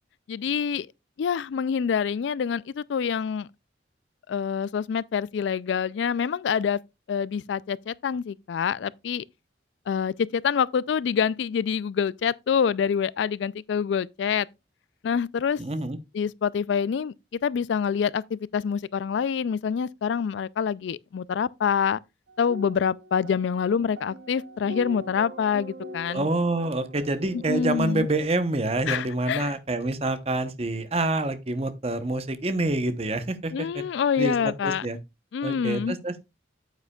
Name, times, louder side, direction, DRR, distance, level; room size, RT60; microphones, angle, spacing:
voice 1, 0.3-0.9 1.2-3.5 4.3-6.8 7.1-9.2 9.9-14.5 15.0-15.6 16.1-17.1 17.4-22.0 22.4-26.3 27.5-28.1 28.9-29.5 33.5-34.9 35.3-36.0, left 7 dB, 75° left, 0.3 m, -26 dB
voice 2, 15.6-16.0 26.1-33.8 34.2-35.0 35.4-36.2, right 2 dB, 30° right, 0.8 m, -27 dB
sound 1, 22.3-28.2, equal, 75° right, 0.8 m, -42 dB
9.6 x 8.2 x 2.3 m
head